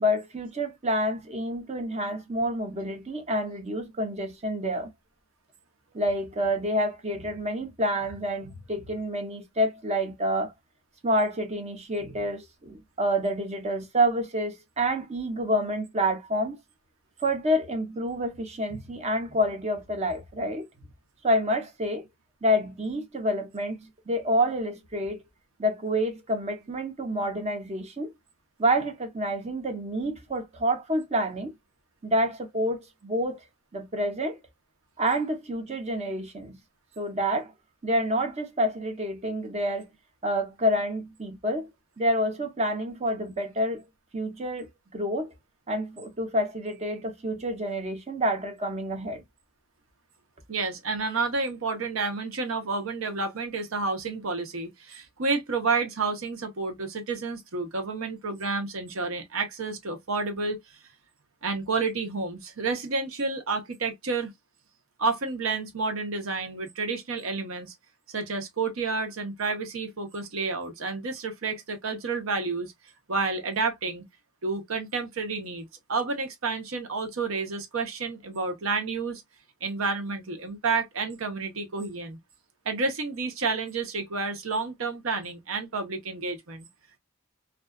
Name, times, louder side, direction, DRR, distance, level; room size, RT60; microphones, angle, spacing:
voice 1, 0.0-4.9 5.9-10.5 11.0-16.6 17.2-20.7 21.2-22.0 22.4-25.2 25.6-28.1 28.6-31.5 32.0-33.4 33.7-34.4 35.0-36.6 37.0-37.5 37.8-39.9 40.2-41.7 42.0-43.8 44.1-45.3 45.7-49.2, equal, 35° right, 0.7 m, -28 dB
voice 2, 50.5-60.6 61.4-64.3 65.0-67.7 68.1-72.7 73.1-74.0 74.4-79.2 79.6-82.2 82.7-86.7, right 4 dB, 80° right, 0.8 m, -30 dB
2.4 x 2.3 x 2.2 m
head